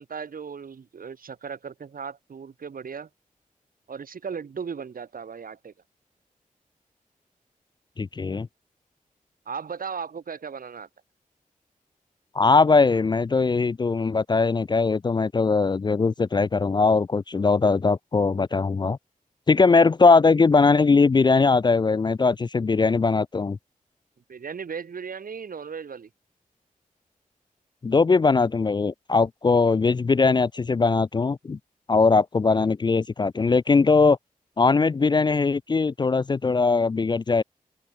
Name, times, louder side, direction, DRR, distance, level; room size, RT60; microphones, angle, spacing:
voice 1, 0.0-3.1 3.9-5.7 9.5-10.9 24.3-26.1, right 6 dB, 80° right, 3.1 m, -36 dB
voice 2, 8.0-8.5 12.4-19.0 19.5-23.6 27.8-31.6 31.9-34.2 34.6-37.4, left 4 dB, 30° left, 0.3 m, -20 dB
open air
cardioid pair, 70°, 15 cm